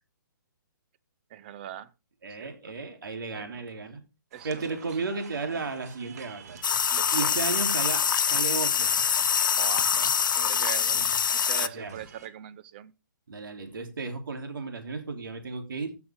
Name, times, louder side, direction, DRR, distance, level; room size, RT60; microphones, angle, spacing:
voice 1, 1.3-1.9 2.4-2.7 3.3-3.6 4.3-4.8 6.9-7.3 9.6-12.9, right 11 dB, 30° right, 0.6 m, -41 dB
voice 2, 2.2-4.0 4.4-6.6 7.1-9.1 11.6-11.9 13.3-16.0, right 4 dB, 85° right, 3.3 m, -34 dB
sound 1, 4.3-12.3, right 6 dB, 50° right, 1.8 m, -48 dB
sound 2, 6.6-11.7, left 7 dB, 70° left, 0.8 m, -25 dB
15.0 x 6.2 x 3.6 m
hypercardioid pair, 165°, 11 cm